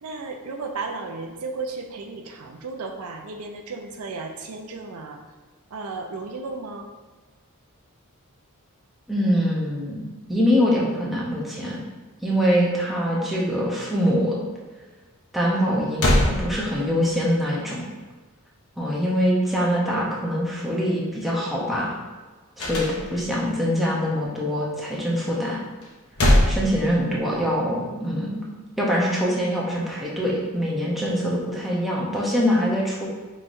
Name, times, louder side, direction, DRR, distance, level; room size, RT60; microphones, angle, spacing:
voice 1, 0.0-5.2 5.7-6.9, right 3 dB, 80° right, 3 dB, 0.5 m, -34 dB
voice 2, 9.1-10.0 10.3-11.8 12.2-14.4 15.3-17.9 18.8-22.0 22.6-25.6 26.5-28.4 28.8-33.1, equal, ahead, -5 dB, 0.7 m, -24 dB
sound 1, 15.6-15.7 16.0-17.1 22.6-23.5 25.8-27.4, left 1 dB, 75° left, 0.8 m, -22 dB
5.5 x 3.1 x 2.6 m, 1.3 s
head